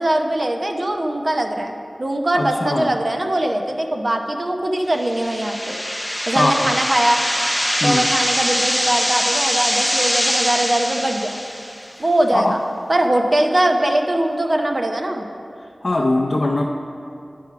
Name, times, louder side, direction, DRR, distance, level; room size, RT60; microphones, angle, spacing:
voice 1, 0.0-5.8 6.3-7.2 7.8-11.4 12.0-12.6 12.9-15.2, right 1 dB, 50° right, 3 dB, 0.7 m, -21 dB
voice 2, 2.3-2.9 6.3-6.7 7.8-8.1 11.9-12.0 12.3-12.6 15.8-16.6, left 2 dB, 50° left, 0 dB, 0.6 m, -20 dB
sound 1, 5.0-11.9, equal, ahead, 0.5 m, -23 dB
10.5 x 4.7 x 5.8 m, 2.7 s
wide cardioid pair, 50°, 0 cm